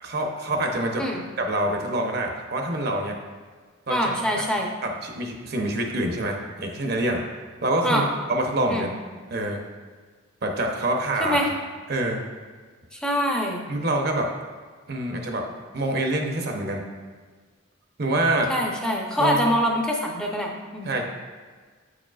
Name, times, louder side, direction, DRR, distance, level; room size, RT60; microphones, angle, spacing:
voice 1, 0.0-1.0 1.4-3.1 3.9-4.1 4.8-7.2 7.6-8.0 8.3-8.9 9.3-9.6 10.4-11.4 11.9-12.2 13.7-14.3 14.9-15.4 15.7-16.8 18.0-18.5 19.2-19.4 20.8-21.0, right 1 dB, 50° right, 2 dB, 0.7 m, -26 dB
voice 2, 3.9-4.7 7.8-8.1 8.7-8.9 11.2-11.5 12.9-13.6 18.5-20.9, equal, 5° left, 0 dB, 0.6 m, -24 dB
8.2 x 4.9 x 2.4 m, 1.5 s
head